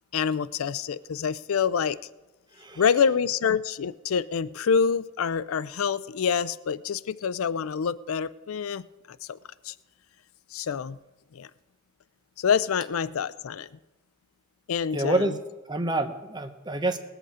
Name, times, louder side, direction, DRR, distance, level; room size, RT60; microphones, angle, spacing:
voice 1, 0.1-2.0 2.8-8.8 9.1-9.4 9.6-9.7 10.5-11.0 11.3-11.5 12.4-13.7 14.7-15.4, left 6 dB, 90° left, 18 dB, 0.4 m, -26 dB
voice 2, 14.9-15.4 15.7-17.0, right 2 dB, 20° right, 7 dB, 0.9 m, -27 dB
19.0 x 8.1 x 4.9 m, 1.1 s
head